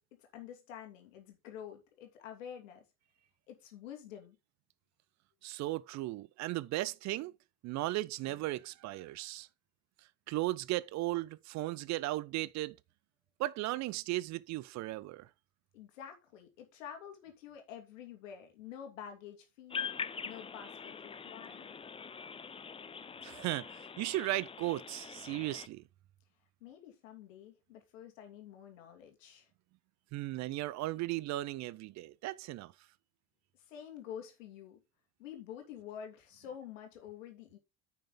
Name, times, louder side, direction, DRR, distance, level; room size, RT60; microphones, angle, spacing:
voice 1, 0.2-2.8 3.5-4.4 15.7-19.9 20.2-21.8 26.6-29.5 33.7-34.8 35.2-37.6, left 9 dB, 75° left, 2.6 m, -48 dB
voice 2, 5.4-7.3 7.6-9.5 10.3-12.8 13.4-15.3 23.2-25.8 30.1-32.7, right 17 dB, 45° right, 0.6 m, -36 dB
sound 1, 19.7-25.7, left 6 dB, 15° left, 0.6 m, -43 dB
10.0 x 5.8 x 3.8 m
hypercardioid pair, 70°, 39 cm